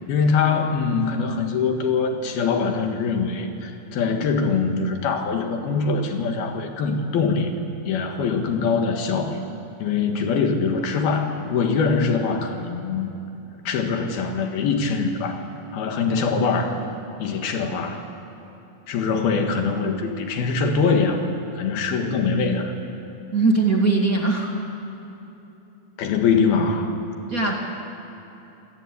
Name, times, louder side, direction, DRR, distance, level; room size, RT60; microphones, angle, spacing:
voice 1, 0.1-7.5 7.9-9.4 9.8-13.1 13.7-15.4 15.7-16.7 17.2-18.0 18.9-21.3 21.5-22.7 26.0-26.9, left 5 dB, 85° left, 4 dB, 3.7 m, -23 dB
voice 2, 23.3-24.5 27.3-27.5, right 3 dB, 30° right, -1 dB, 2.1 m, -20 dB
27.0 x 18.5 x 8.6 m, 3.0 s
omnidirectional pair, 4.2 m